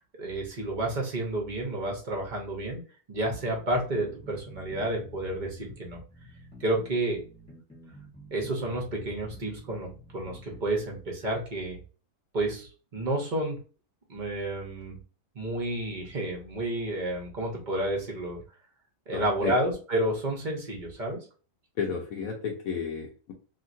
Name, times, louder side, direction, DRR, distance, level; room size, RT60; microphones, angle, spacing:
voice 1, 0.2-2.8 3.1-6.0 6.6-7.2 8.3-11.8 12.3-13.6 14.1-15.0 15.3-18.4 19.1-21.2, right 1 dB, 35° right, -1 dB, 0.9 m, -30 dB
sound 1, 3.3-10.6, equal, 5° left, 1.1 m, -49 dB
voice 2, 19.1-19.5 21.8-23.3, left 6 dB, 70° left, 1 dB, 1.1 m, -32 dB
2.9 x 2.8 x 2.6 m, 0.37 s
omnidirectional pair, 1.6 m